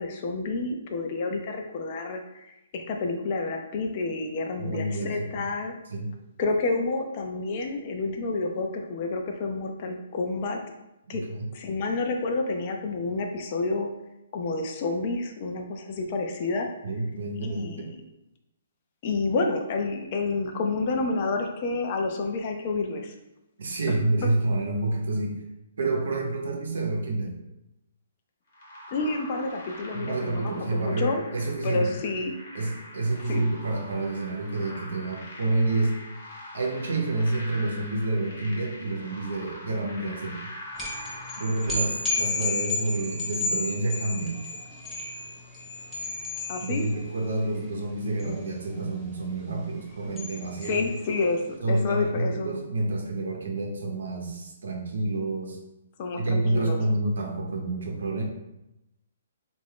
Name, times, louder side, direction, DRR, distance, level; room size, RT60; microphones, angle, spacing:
voice 1, 0.0-5.7 6.4-10.6 11.1-11.2 11.5-13.9 14.3-16.7 17.4-17.9 19.0-23.1 28.9-31.2 31.6-32.3 33.3-33.5 46.5-46.8 50.7-51.4 51.7-52.6 56.0-56.8, left 3 dB, 35° left, 3 dB, 0.4 m, -29 dB
voice 2, 4.6-5.4 5.9-6.1 11.1-11.5 16.8-18.0 23.6-25.4 25.8-27.3 29.9-31.9 32.5-36.0 36.5-40.5 41.4-44.5 46.6-50.9 51.6-55.6 56.2-58.2, right 2 dB, 80° right, 1 dB, 0.8 m, -28 dB
sound 1, 28.5-42.9, left 1 dB, 60° left, 1.0 m, -44 dB
sound 2, 40.7-51.4, left 3 dB, 5° left, 0.9 m, -33 dB
3.5 x 2.5 x 3.5 m, 0.90 s
hypercardioid pair, 160°, 0 cm